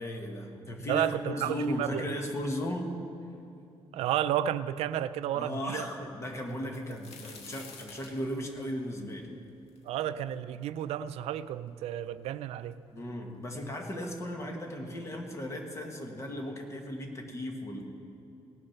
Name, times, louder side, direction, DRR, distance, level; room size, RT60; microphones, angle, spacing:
voice 1, 0.0-2.9 5.3-9.3 12.9-17.8, equal, 30° left, 1.5 m, -36 dB
voice 2, 0.9-2.1 3.9-5.8 9.9-12.8, right 11 dB, 85° right, 0.4 m, -31 dB
sound 1, 6.5-10.3 10.8-10.9 11.7-11.8 12.0-12.7 13.6-13.7 14.1-14.3, left 4 dB, 85° left, 1.6 m, -50 dB
18.5 x 6.5 x 5.8 m
cardioid pair, 145°, 10 cm